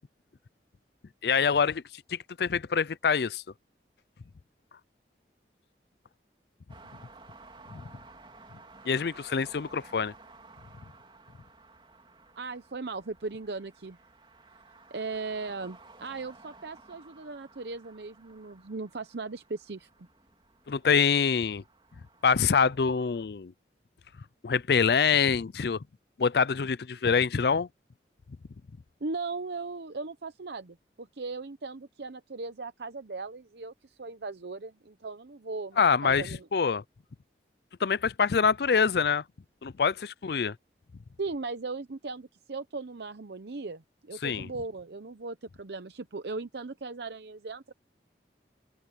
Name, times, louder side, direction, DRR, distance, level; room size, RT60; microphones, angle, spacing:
voice 1, 1.2-1.8 2.1-3.4 7.7-7.8 8.9-10.1 20.7-21.6 22.2-23.5 24.4-25.8 26.2-27.7 35.8-36.8 37.8-39.2 39.6-40.6 44.2-44.5, left 6 dB, 65° left, 0.5 m, -25 dB
sound 1, 6.7-23.3, right 3 dB, 30° right, 2.8 m, -55 dB
voice 2, 12.4-14.0 14.9-19.9 29.0-36.5 41.2-47.7, right 3 dB, 70° right, 0.8 m, -38 dB
open air
head